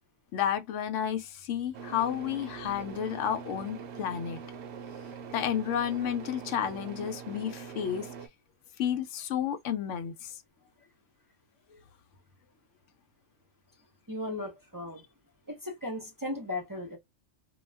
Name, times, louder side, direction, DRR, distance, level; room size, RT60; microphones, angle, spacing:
voice 1, 0.3-4.4 5.3-8.1 8.8-10.3, left 9 dB, 85° left, 0.9 m, -31 dB
sound 1, 1.7-8.3, right 6 dB, 70° right, 0.9 m, -43 dB
voice 2, 14.1-15.0 15.5-17.0, left 1 dB, 20° right, 0.6 m, -36 dB
2.3 x 2.2 x 3.2 m
omnidirectional pair, 1.2 m